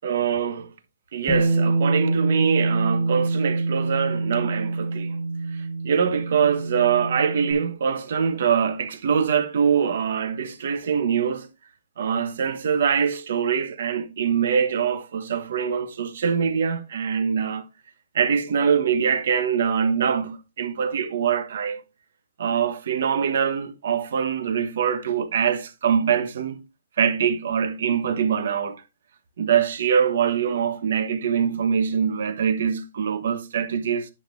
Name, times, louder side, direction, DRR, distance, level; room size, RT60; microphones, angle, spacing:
voice 1, 0.0-0.7 1.1-5.2 5.5-11.5 12.0-17.6 18.1-21.8 22.4-26.6 27.0-28.8 29.4-34.1, right 7 dB, 50° right, 1.1 m, -23 dB
Bass guitar, 1.3-7.5, right 3 dB, 5° right, 1.7 m, -25 dB
10.0 x 6.6 x 2.6 m
hypercardioid pair, 175°, 0 cm